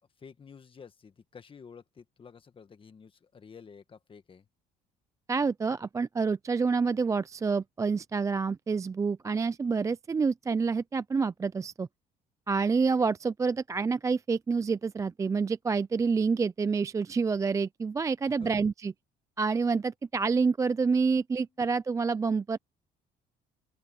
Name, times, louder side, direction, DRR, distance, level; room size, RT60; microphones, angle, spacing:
voice 1, 0.2-4.5 18.3-18.6, left 6 dB, 30° left, 1.7 m, -51 dB
voice 2, 5.3-11.9 12.5-18.9 19.4-22.6, right 5 dB, 20° right, 0.3 m, -28 dB
open air
cardioid pair, 110°, 17 cm